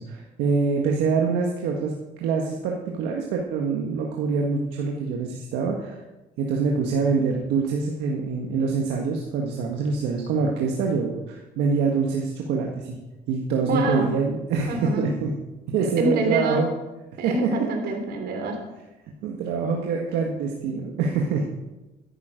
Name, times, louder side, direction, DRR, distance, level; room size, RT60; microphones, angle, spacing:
voice 1, 0.0-1.9 2.2-6.0 6.4-13.0 13.3-15.3 15.7-16.7 17.2-17.9 19.2-21.5, right 5 dB, 85° right, 0 dB, 1.6 m, -25 dB
voice 2, 13.7-14.1 14.7-15.1 15.8-16.6 17.2-18.6, right 1 dB, 70° right, 4 dB, 3.1 m, -26 dB
13.5 x 11.0 x 5.2 m, 1.1 s
cardioid pair, 110°, 17 cm